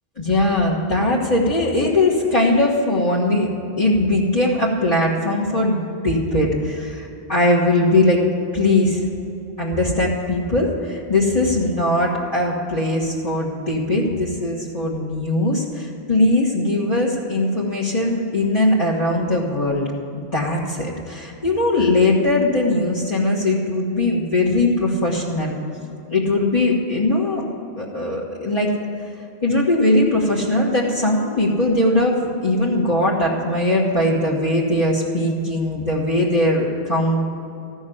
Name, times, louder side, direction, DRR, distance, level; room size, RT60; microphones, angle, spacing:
voice 1, 0.2-3.5 3.8-5.8 6.0-8.2 8.5-9.1 9.6-19.9 20.1-25.5 26.1-27.4 27.8-28.7 29.4-37.3, left 1 dB, 35° left, -5 dB, 1.4 m, -20 dB
14.5 x 6.4 x 9.9 m, 2.8 s
omnidirectional pair, 1.1 m